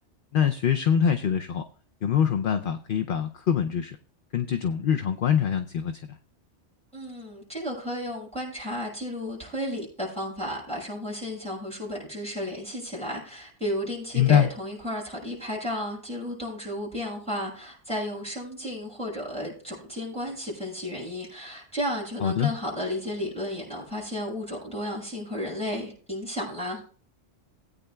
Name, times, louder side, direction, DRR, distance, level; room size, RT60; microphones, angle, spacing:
voice 1, 0.3-1.6 2.0-4.0 4.3-5.9 14.2-14.5 22.2-22.5, left 8 dB, 55° left, 7 dB, 0.7 m, -24 dB
voice 2, 6.9-26.8, equal, 5° left, -3 dB, 6.1 m, -33 dB
19.0 x 9.1 x 2.3 m, 0.41 s
omnidirectional pair, 1.2 m